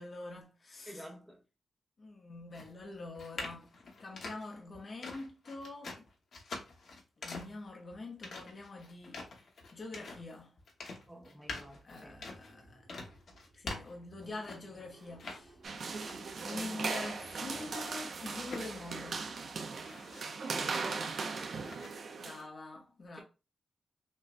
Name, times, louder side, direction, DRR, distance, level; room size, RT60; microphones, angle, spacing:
voice 1, 0.0-1.1 2.0-3.7 4.0-6.0 7.2-9.2 9.7-10.5 11.8-12.9 13.5-15.6 16.4-19.3 22.1-23.2, left 2 dB, 35° left, 0.7 m, -45 dB
voice 2, 0.9-1.4 11.1-12.2 16.5-16.8 20.6-21.1, right 1 dB, 5° right, 1.0 m, -49 dB
sound 1, 2.5-14.8 15.2-16.4 16.8-19.4 19.7-21.3 21.6-21.9, left 3 dB, 65° left, 1.2 m, -46 dB
Car / Engine starting, 11.4-20.2, right 2 dB, 85° right, 1.8 m, -61 dB
sound 2, 15.6-22.4, right 4 dB, 55° right, 0.5 m, -38 dB
6.2 x 2.1 x 2.5 m
wide cardioid pair, 165°, 0 cm